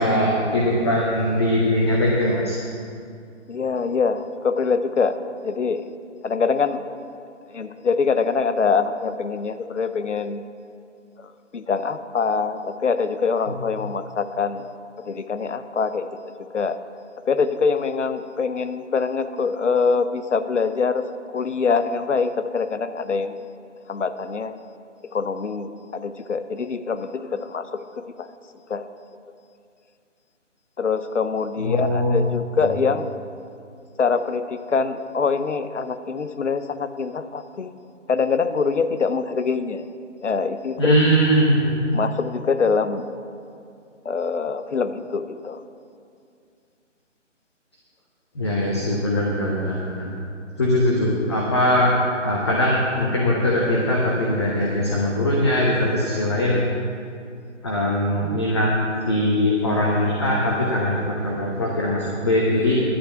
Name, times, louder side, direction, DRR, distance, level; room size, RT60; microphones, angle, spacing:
voice 1, 0.0-2.6 13.5-13.6 31.6-32.3 32.6-32.7 40.8-41.8 48.3-50.1 50.6-51.9 52.2-56.6 57.6-58.7 59.1-62.8, left 1 dB, 20° left, -3 dB, 0.9 m, -21 dB
voice 2, 3.5-5.2 5.4-5.8 6.2-6.8 7.5-10.5 11.5-14.6 15.0-16.1 16.5-16.8 17.3-21.1 21.3-23.4 23.9-24.6 25.1-28.3 28.7-28.9 30.8-33.1 34.0-37.7 38.1-39.9 40.2-41.0 41.9-43.1 44.0-45.6, left 5 dB, 70° left, 11 dB, 0.8 m, -24 dB
11.5 x 8.4 x 5.8 m, 2.4 s
figure-of-eight pair, 155°, 37 cm